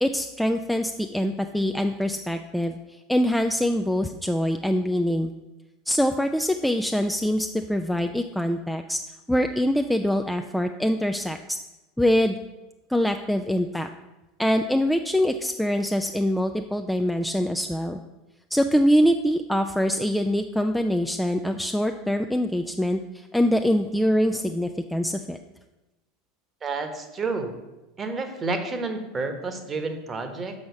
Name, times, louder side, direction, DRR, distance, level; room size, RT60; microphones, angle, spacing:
voice 1, 0.0-5.3 5.9-9.0 9.3-11.4 12.0-12.4 12.9-13.9 14.4-18.0 18.5-25.4, equal, ahead, 5 dB, 0.4 m, -24 dB
voice 2, 26.6-27.5 28.0-30.5, right 3 dB, 25° right, 7 dB, 1.2 m, -30 dB
6.3 x 6.2 x 6.9 m, 1.0 s
figure-of-eight pair, 75°, 0 cm